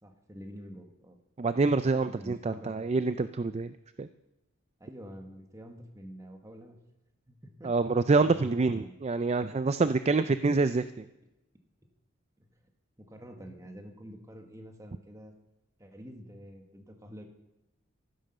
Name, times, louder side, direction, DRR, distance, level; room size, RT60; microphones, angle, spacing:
voice 1, 0.0-1.2 2.0-2.7 4.8-6.8 7.3-7.7 8.2-8.9 13.0-15.3 15.8-17.3, equal, 15° right, 4 dB, 1.5 m, -47 dB
voice 2, 1.4-4.1 7.6-11.0, right 3 dB, 30° right, 12 dB, 0.4 m, -27 dB
14.0 x 10.0 x 6.7 m, 0.94 s
head